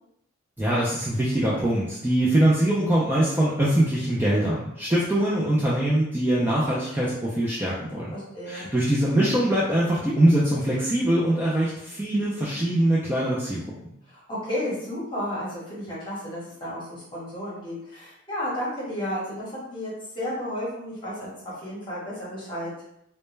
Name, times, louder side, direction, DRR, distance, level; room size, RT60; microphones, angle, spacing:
voice 1, 0.6-8.1 8.5-13.6, right 1 dB, 10° right, -7 dB, 0.3 m, -23 dB
voice 2, 8.1-8.7 14.1-21.3 21.6-22.7, equal, 25° left, -7 dB, 1.0 m, -32 dB
2.1 x 2.1 x 3.1 m, 0.77 s
head